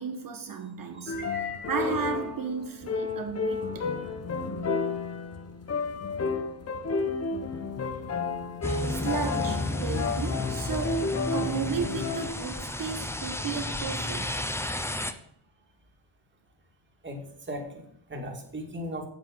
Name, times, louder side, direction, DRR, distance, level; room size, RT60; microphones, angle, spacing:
voice 1, 0.0-1.2 1.7-3.9 8.7-14.5, right 6 dB, 45° right, 1.3 m, -34 dB
sound 1, 1.1-12.3, left 4 dB, 30° left, 0.9 m, -31 dB
voice 2, 1.1-1.7 7.9-8.0 17.0-17.2 17.5-19.1, left 1 dB, 25° right, 2.5 m, -38 dB
sound 2, 8.6-15.1, left 1 dB, 5° left, 0.6 m, -32 dB
8.6 x 7.8 x 5.5 m
cardioid pair, 130°, 46 cm